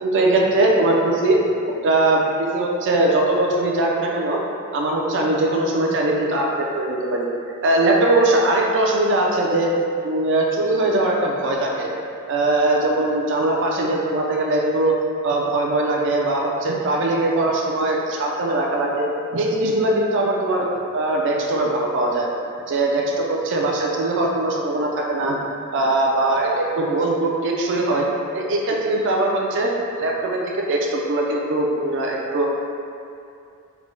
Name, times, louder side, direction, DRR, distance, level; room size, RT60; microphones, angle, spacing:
voice 1, 0.0-1.4 1.7-4.4 4.7-7.3 7.6-9.7 10.0-11.9 12.3-14.9 15.2-19.0 19.3-20.7 20.9-22.3 22.7-25.4 25.7-28.1 28.3-29.7 30.0-32.5, right 2 dB, 55° right, -1 dB, 0.4 m, -21 dB
3.4 x 2.1 x 3.7 m, 2.5 s
head